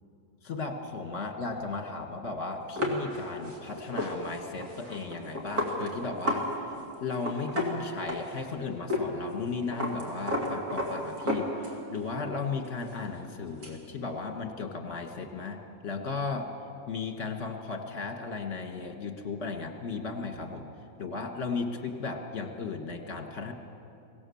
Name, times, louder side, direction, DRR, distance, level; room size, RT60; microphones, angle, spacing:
voice 1, 0.4-6.5 7.0-11.5 11.9-16.5 16.9-20.7 21.0-23.5, left 4 dB, 40° left, 5 dB, 2.0 m, -35 dB
sound 1, 2.8-6.5 6.7-6.8 7.1-8.5 8.9-9.1 9.3-12.0 12.3-13.8, left 1 dB, 55° right, 3.3 m, -32 dB
24.0 x 18.0 x 7.1 m, 2.6 s
omnidirectional pair, 2.0 m